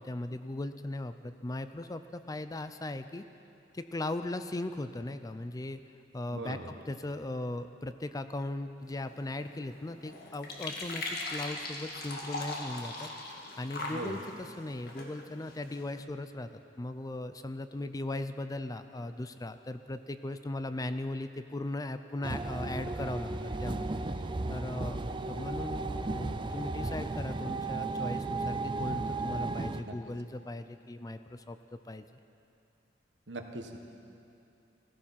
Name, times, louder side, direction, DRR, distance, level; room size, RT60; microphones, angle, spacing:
voice 1, 0.0-3.3 3.7-5.8 6.1-16.5 16.8-23.3 23.6-23.9 24.5-25.0 25.3-32.0, left 2 dB, 20° left, 10 dB, 0.5 m, -38 dB
voice 2, 6.3-6.7 13.0-13.1 13.8-14.2 29.8-29.9 33.3-33.8, right 2 dB, 75° right, 4 dB, 1.4 m, -40 dB
sound 1, 8.8-16.0, left 2 dB, 60° left, 1.8 m, -41 dB
sound 2, 22.2-29.8, right 3 dB, 25° right, 0.5 m, -34 dB
16.0 x 15.0 x 5.8 m, 2.7 s
head